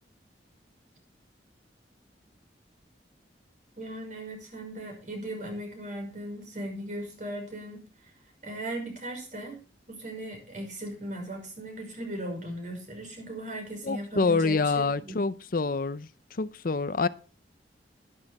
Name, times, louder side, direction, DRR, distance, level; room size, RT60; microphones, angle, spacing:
voice 1, 3.8-7.8 8.4-9.6 9.9-15.2, right 1 dB, 45° right, 5.6 m, -38 dB
voice 2, 13.8-16.1 16.4-17.1, left 4 dB, 50° left, 0.6 m, -26 dB
12.0 x 11.5 x 4.2 m
head